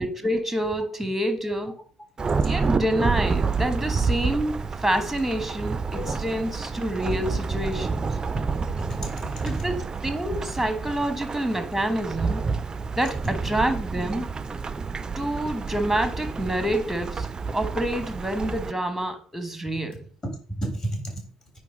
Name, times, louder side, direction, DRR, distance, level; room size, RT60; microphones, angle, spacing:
voice 1, 0.0-1.8 2.4-8.1 9.4-12.4 13.0-14.3 15.1-20.0, right 1 dB, ahead, 1.3 m, -27 dB
Thunderstorm / Rain, 2.2-18.7, right 4 dB, 25° right, 0.4 m, -29 dB
voice 2, 8.3-9.7 17.9-18.0 20.6-21.2, right 1 dB, 25° left, 3.4 m, -33 dB
9.2 x 3.3 x 5.2 m
figure-of-eight pair, 50°, 3 cm